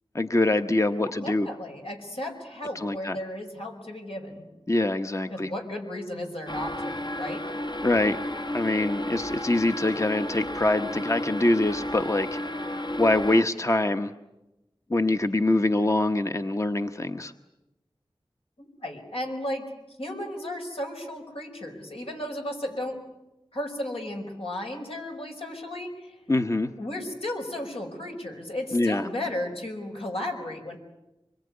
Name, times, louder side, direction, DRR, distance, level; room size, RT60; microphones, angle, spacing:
voice 1, 0.1-1.5 2.7-3.2 4.7-5.5 7.8-8.2 8.5-12.4 13.0-14.1 14.9-17.3 26.3-26.7 28.7-29.1, left 2 dB, 30° left, 7 dB, 0.9 m, -24 dB
voice 2, 1.0-4.4 5.3-7.4 18.6-19.7 20.0-23.0 23.5-26.2 26.8-30.8, left 1 dB, 80° left, 2 dB, 5.3 m, -34 dB
sound 1, 6.5-13.4, left 1 dB, 55° left, 1.2 m, -33 dB
25.5 x 22.5 x 9.6 m, 0.97 s
wide cardioid pair, 60°, 10 cm